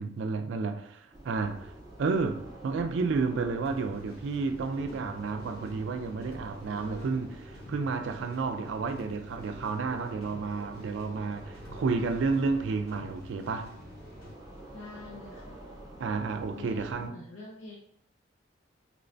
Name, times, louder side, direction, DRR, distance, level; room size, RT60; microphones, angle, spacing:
voice 1, 0.0-1.7 2.0-7.3 7.7-13.7 16.0-17.2, right 4 dB, 70° right, 0.3 m, -31 dB
sound 1, 1.1-17.1, right 1 dB, 20° right, 0.6 m, -48 dB
sound 2, 3.6-14.4, left 2 dB, 50° left, 0.8 m, -49 dB
voice 2, 6.7-7.2 14.7-15.6 16.5-17.8, left 2 dB, 85° left, 0.6 m, -46 dB
3.2 x 2.9 x 2.6 m
head